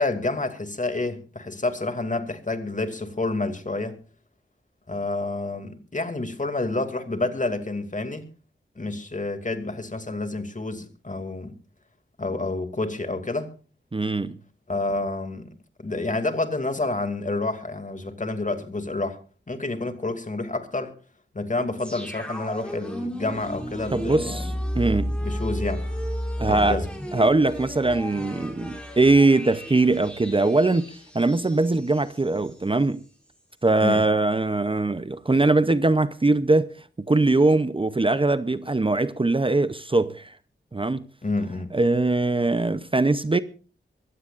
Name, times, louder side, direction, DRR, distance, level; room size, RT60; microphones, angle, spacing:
voice 1, 0.0-4.0 4.9-8.2 8.8-11.5 12.2-13.5 14.7-15.5 15.8-19.2 19.5-20.9 21.3-24.6 25.2-25.9 26.4-26.9 33.8-34.0 41.2-41.7, left 2 dB, 40° left, 2.5 m, -29 dB
voice 2, 13.9-14.4 23.9-25.2 26.4-26.8 27.1-33.0 33.6-36.7 37.0-40.4 40.7-41.0 41.7-43.4, right 2 dB, 25° right, 0.7 m, -21 dB
sound 1, 21.8-32.6 32.9-33.0, equal, 5° left, 5.5 m, -33 dB
23.0 x 16.0 x 2.5 m
wide cardioid pair, 90°, 20 cm